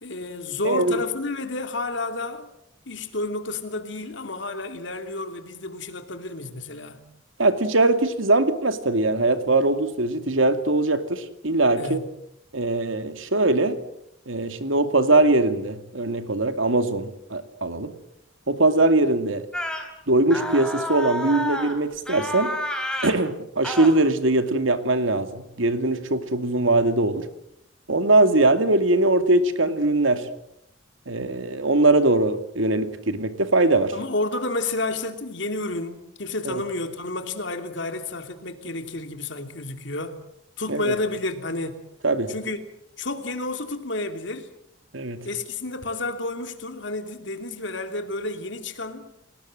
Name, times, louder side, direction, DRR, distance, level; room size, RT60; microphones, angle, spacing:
voice 1, 0.0-2.5 2.9-7.0 11.8-12.0 33.9-40.2 40.6-41.8 42.3-42.6 43.0-44.5 45.2-49.1, left 2 dB, 65° left, 3.0 m, -30 dB
voice 2, 0.6-1.0 7.4-12.0 12.5-13.8 14.3-17.9 18.5-19.5 20.1-22.5 23.0-27.3 27.9-30.3 31.1-33.9 36.5-36.6 40.7-40.9 42.0-42.3 44.9-45.2, right 2 dB, 80° right, 2.5 m, -21 dB
sound 1, 19.5-19.9 20.3-21.8 22.1-23.2 23.6-23.9, left 1 dB, 5° left, 3.6 m, -29 dB
30.0 x 19.0 x 7.7 m
head